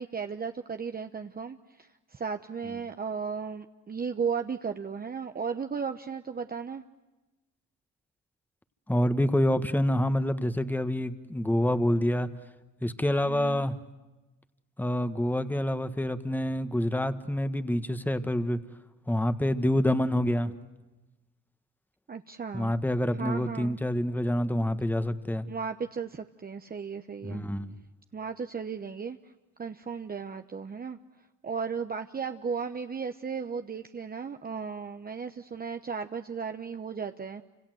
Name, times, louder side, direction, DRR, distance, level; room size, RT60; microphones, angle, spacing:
voice 1, 0.0-6.8 13.3-13.6 22.1-22.7 23.2-23.8 25.5-27.4 28.1-29.2 29.6-31.0 31.4-37.4, right 6 dB, 30° right, 1.0 m, -35 dB
voice 2, 8.9-12.3 12.8-13.8 14.8-18.6 19.1-20.5 22.5-25.5 27.2-27.8, left 1 dB, 5° left, 1.6 m, -27 dB
29.0 x 26.0 x 7.9 m
cardioid pair, 90°, 30 cm